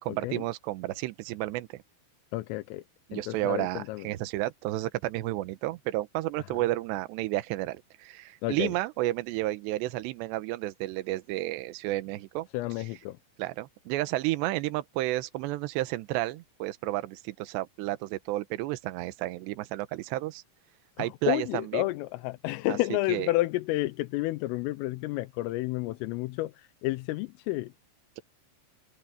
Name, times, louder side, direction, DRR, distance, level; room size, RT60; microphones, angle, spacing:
voice 1, 0.0-1.8 3.1-12.5 13.4-20.4 21.0-21.8 22.7-22.8 23.1-23.3, right 17 dB, 75° right, 2.8 m, -31 dB
voice 2, 2.3-2.8 3.1-4.1 8.4-8.7 12.5-13.2 21.0-27.7, left 18 dB, 85° left, 3.3 m, -30 dB
omnidirectional pair, 5.8 m